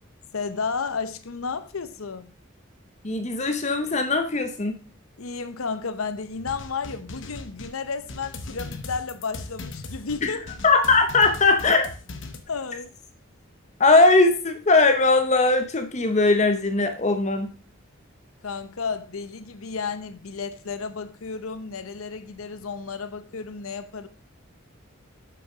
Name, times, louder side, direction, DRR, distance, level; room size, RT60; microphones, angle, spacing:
voice 1, 0.3-2.3 5.2-10.5 12.5-12.9 18.4-24.1, left 5 dB, 85° left, 0.8 m, -32 dB
voice 2, 3.0-4.8 10.2-10.3 10.6-11.9 13.8-17.5, left 3 dB, 35° left, 0.7 m, -20 dB
sound 1, 6.3-12.4, left 2 dB, 60° left, 0.9 m, -39 dB
6.9 x 6.2 x 4.9 m
head